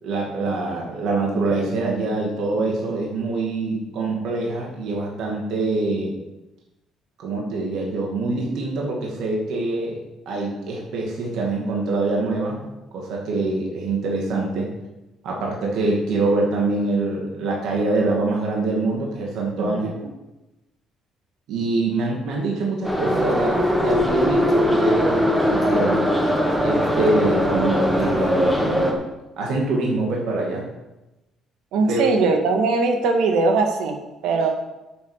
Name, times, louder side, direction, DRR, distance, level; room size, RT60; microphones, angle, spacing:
voice 1, 0.0-6.2 7.2-10.0 10.3-12.7 12.9-14.7 15.2-19.9 21.5-26.1 26.6-28.9 29.4-30.7 31.9-32.0, right 2 dB, 65° right, -2 dB, 2.3 m, -24 dB
Subway metro underground, 22.8-28.9, equal, 5° right, 1.3 m, -20 dB
voice 2, 31.7-34.0 34.2-34.5, right 3 dB, 80° right, 4 dB, 1.8 m, -20 dB
8.7 x 7.3 x 6.4 m, 1.0 s
cardioid pair, 165°, 0 cm